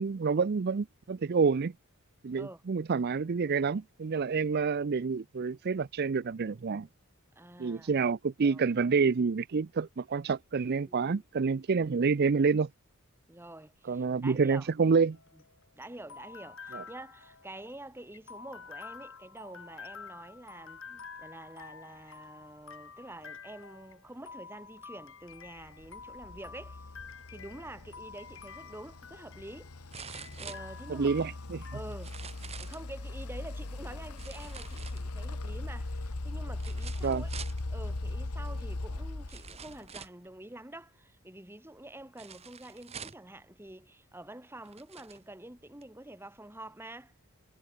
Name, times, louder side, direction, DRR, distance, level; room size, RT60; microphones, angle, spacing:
voice 1, 0.0-1.7 2.2-6.9 7.6-12.7 13.9-15.2 16.7-16.8 30.9-31.6 37.0-37.2, right 5 dB, 45° right, 0.4 m, -28 dB
voice 2, 7.4-8.0 8.4-8.6 10.8-11.2 13.3-14.7 15.3-15.4 15.8-26.8 27.3-29.8 30.4-31.3 31.7-32.2 32.6-37.3 37.7-47.1, right 1 dB, 10° right, 1.9 m, -47 dB
sound 1, 15.1-31.8, left 5 dB, 60° left, 6.4 m, -49 dB
sound 2, 25.6-40.0, left 2 dB, 90° left, 1.4 m, -39 dB
sound 3, 28.5-28.6 29.9-31.2 31.9-32.9 34.2-35.3 36.6-37.6 38.6-38.7 39.3-40.3 42.2-43.3 44.1-44.2 44.6-45.2 45.8-45.9, right 7 dB, 30° right, 1.4 m, -46 dB
head